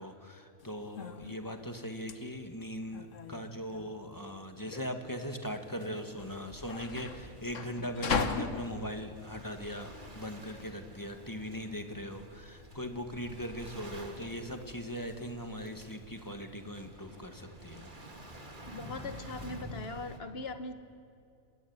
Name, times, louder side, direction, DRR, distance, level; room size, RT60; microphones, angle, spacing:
voice 1, 0.0-17.9, equal, 15° left, 5 dB, 2.0 m, -40 dB
sound 1, 0.6-10.7, left 5 dB, 60° left, 1.5 m, -39 dB
Waves surf, 6.2-20.2, right 2 dB, 35° right, 2.4 m, -53 dB
sound 2, 6.6-19.8, left 1 dB, 15° right, 3.2 m, -53 dB
voice 2, 18.7-20.8, left 3 dB, 45° left, 9 dB, 1.7 m, -40 dB
27.0 x 20.5 x 9.8 m, 2.5 s
omnidirectional pair, 1.5 m